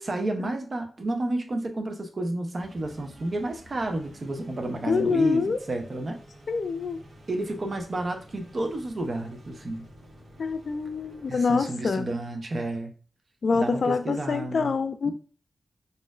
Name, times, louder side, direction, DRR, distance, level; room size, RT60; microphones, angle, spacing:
voice 1, 0.0-6.2 7.3-9.8 11.3-12.9 13.5-15.1, right 2 dB, 50° right, 0.6 m, -31 dB
sound 1, 2.6-11.4, right 1 dB, 85° right, 1.1 m, -50 dB
voice 2, 4.9-5.6 6.5-7.0 10.4-12.1 13.4-15.1, left 4 dB, 70° left, 0.3 m, -25 dB
4.1 x 2.5 x 2.3 m
wide cardioid pair, 90°, 0 cm